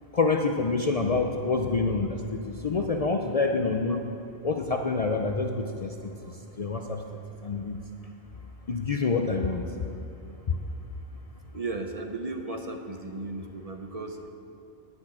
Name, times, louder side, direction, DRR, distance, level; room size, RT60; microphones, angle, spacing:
voice 1, 0.1-4.0 4.4-7.0 7.4-7.8 8.7-9.6 10.5-10.6, left 4 dB, 45° left, 3 dB, 0.5 m, -27 dB
voice 2, 11.5-14.3, right 2 dB, 40° right, 4 dB, 0.7 m, -35 dB
11.0 x 6.2 x 8.7 m, 2.9 s
omnidirectional pair, 1.1 m